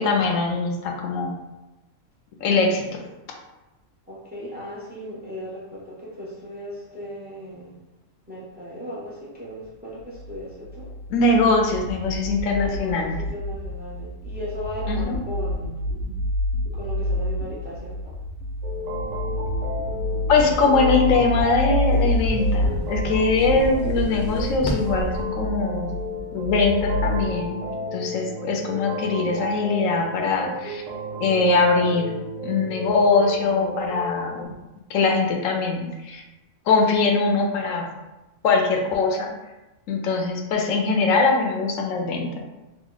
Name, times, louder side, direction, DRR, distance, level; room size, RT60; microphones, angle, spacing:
voice 1, 0.0-1.3 2.4-3.0 11.1-13.2 14.9-15.2 20.3-26.0 26.3-27.6 27.9-30.8 31.2-32.1 32.4-34.5 34.9-36.2 36.7-37.8 38.4-39.3 39.9-42.4, left 3 dB, 80° left, 2 dB, 0.9 m, -22 dB
voice 2, 4.1-7.8 8.3-10.9 12.5-15.8 16.7-18.2, equal, 10° right, -6 dB, 0.5 m, -36 dB
sound 1, 10.1-27.3, left 1 dB, 65° right, 1.0 m, -28 dB
sound 2, 18.6-34.5, equal, 80° right, 0.4 m, -33 dB
sound 3, 21.8-25.2, equal, 45° left, 0.6 m, -34 dB
3.0 x 2.1 x 3.8 m, 1.0 s
omnidirectional pair, 1.4 m